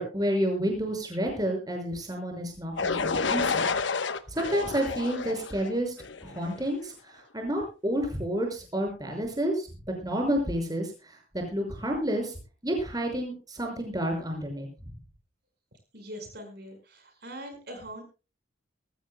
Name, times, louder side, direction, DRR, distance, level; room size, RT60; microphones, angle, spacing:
voice 1, 0.0-3.7 4.3-5.9 6.2-9.7 10.0-12.3 12.6-14.7, equal, 20° right, 3 dB, 5.8 m, -30 dB
sound 1, 2.8-6.7, left 4 dB, 70° left, 1.0 m, -30 dB
voice 2, 15.9-18.0, equal, 55° right, 5 dB, 5.0 m, -42 dB
22.5 x 15.5 x 2.2 m, 0.32 s
head